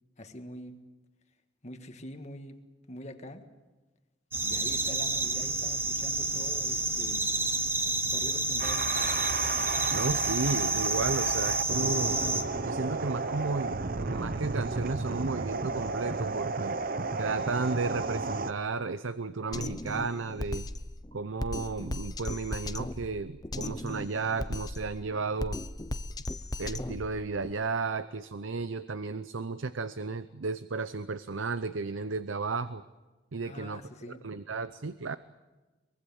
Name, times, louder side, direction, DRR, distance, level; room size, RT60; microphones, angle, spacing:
voice 1, 0.2-0.8 1.6-2.6 2.9-3.4 4.4-7.6 8.1-8.9 33.4-34.2, left 1 dB, 35° left, 6 dB, 1.8 m, -44 dB
sound 1, 4.3-12.4, right 2 dB, 10° right, 1.3 m, -29 dB
sound 2, 8.6-18.5, right 3 dB, 45° right, 0.9 m, -33 dB
voice 2, 9.9-12.2 12.6-16.8 17.2-20.7 21.1-25.6 26.6-32.8 33.3-33.8 34.2-35.2, right 4 dB, 85° right, 13 dB, 0.7 m, -33 dB
Drum kit, 19.5-27.5, left 1 dB, 20° left, 0.7 m, -37 dB
24.0 x 22.5 x 7.3 m, 1.2 s
head